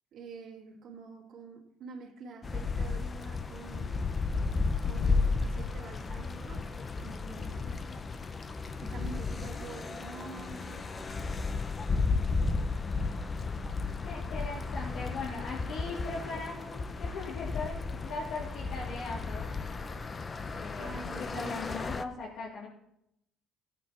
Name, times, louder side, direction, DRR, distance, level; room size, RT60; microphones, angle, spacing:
voice 1, 0.1-4.2 4.8-6.7 7.0-7.9 8.8-11.2 20.8-22.0, right 4 dB, 60° right, -1 dB, 2.4 m, -47 dB
sound 1, 2.4-22.0, left 4 dB, 25° left, 0.7 m, -33 dB
voice 2, 14.0-19.5 20.5-20.9 21.2-22.7, left 3 dB, 80° left, -7 dB, 3.3 m, -39 dB
16.5 x 9.0 x 4.5 m, 0.80 s
cardioid pair, 120°, 0 cm